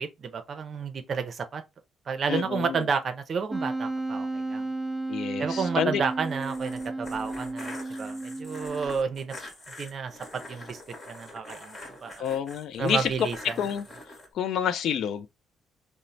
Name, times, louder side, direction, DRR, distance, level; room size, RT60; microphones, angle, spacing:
voice 1, 0.0-1.6 2.1-4.7 5.4-9.3 9.8-10.8 11.1-12.2 12.8-13.6, right 5 dB, 50° right, 0.5 m, -31 dB
voice 2, 2.3-2.8 5.1-6.0 12.2-13.1 13.6-13.8 14.3-15.3, left 8 dB, 70° left, 0.3 m, -28 dB
Wind instrument woodwind instrument, 3.5-9.2, right 2 dB, 5° right, 0.6 m, -33 dB
sound 1, 6.1-14.3, left 1 dB, 35° left, 1.0 m, -44 dB
3.0 x 2.0 x 2.5 m
cardioid pair, 90°, 0 cm